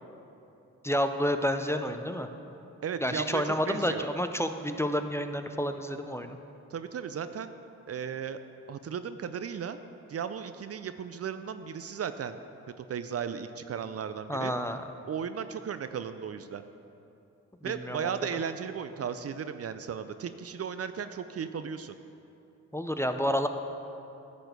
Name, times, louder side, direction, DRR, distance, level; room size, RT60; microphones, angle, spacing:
voice 1, 0.8-2.3 3.0-6.4 14.3-14.8 17.6-18.0 22.7-23.5, equal, 10° left, 7 dB, 0.5 m, -29 dB
voice 2, 2.8-4.1 6.7-7.5 7.9-8.4 8.7-9.8 10.1-12.4 12.8-14.5 15.1-16.6 17.6-22.0, right 7 dB, 50° right, 11 dB, 0.4 m, -35 dB
10.5 x 4.2 x 6.7 m, 2.8 s
supercardioid pair, 50°, 32 cm